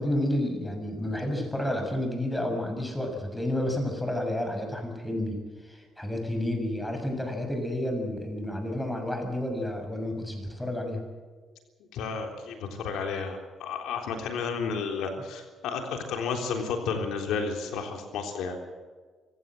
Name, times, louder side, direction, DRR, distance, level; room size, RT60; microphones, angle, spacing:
voice 1, 0.0-11.0, left 1 dB, 5° left, 4 dB, 6.7 m, -30 dB
voice 2, 11.9-18.6, left 5 dB, 85° left, 4 dB, 3.5 m, -32 dB
25.0 x 16.5 x 7.8 m, 1.4 s
cardioid pair, 90°, 0 cm